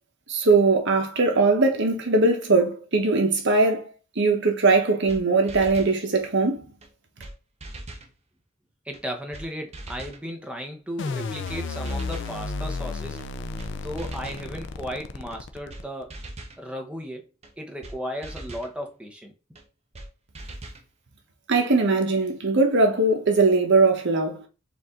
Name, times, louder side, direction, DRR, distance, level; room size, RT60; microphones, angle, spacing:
voice 1, 0.3-3.9 4.2-6.6 21.5-24.4, right 3 dB, 55° right, 1.1 m, -20 dB
sound 1, 4.7-4.8 5.1-5.2 5.5-6.0 6.8-6.9 7.2-7.3 7.6-8.1 8.9-9.0 9.3-9.5 9.7-10.2 11.1-11.2 11.4-11.6 11.9-12.3 13.2-13.3 13.6-13.7 14.0-14.5 15.3-15.4 15.7-15.8 16.1-16.6 17.4-17.5 17.8-18.0 18.2-18.7 19.6-19.7 19.9-20.1 20.3-20.8, right 1 dB, 30° right, 0.7 m, -40 dB
voice 2, 8.8-13.2 13.7-16.2 16.6-17.2 17.6-19.3, equal, 5° right, 0.9 m, -35 dB
sound 2, 11.0-16.0, left 3 dB, 55° left, 0.5 m, -32 dB
4.8 x 2.7 x 3.7 m
head